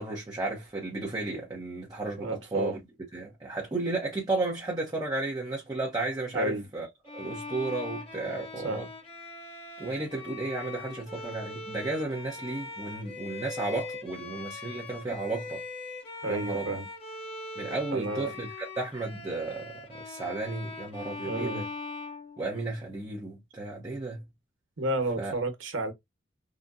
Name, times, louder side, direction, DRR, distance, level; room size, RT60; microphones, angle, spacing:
voice 1, 0.0-2.8 3.1-6.9 7.1-8.9 9.8-15.6 16.3-16.8 17.6-21.7 22.4-24.2 25.2-25.3, right 2 dB, 20° right, 0.8 m, -33 dB
voice 2, 2.2-2.7 6.3-6.6 8.6-8.8 16.2-16.8 17.9-18.3 21.2-21.6 24.8-25.9, right 1 dB, 90° right, 1.1 m, -31 dB
Bowed string instrument, 7.1-22.9, left 3 dB, 30° left, 0.9 m, -41 dB
3.8 x 2.2 x 2.5 m
head